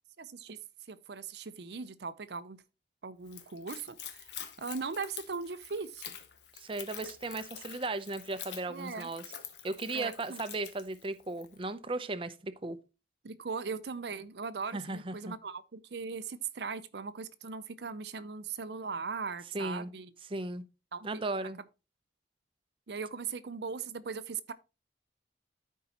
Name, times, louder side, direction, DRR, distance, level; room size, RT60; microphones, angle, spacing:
voice 1, 0.2-0.6 0.9-2.6 3.0-4.3 4.6-6.2 8.7-9.1 9.9-10.4 13.2-20.1 20.9-21.2 22.9-24.5, right 5 dB, 65° right, 0.6 m, -39 dB
Splash splatter / Trickle dribble, 3.2-11.6, left 9 dB, 75° left, 1.1 m, -47 dB
voice 2, 6.5-9.2 9.6-12.8 14.7-15.3 19.5-19.9 20.3-20.6 21.0-21.6, right 2 dB, 30° right, 0.6 m, -36 dB
13.5 x 4.6 x 2.9 m
head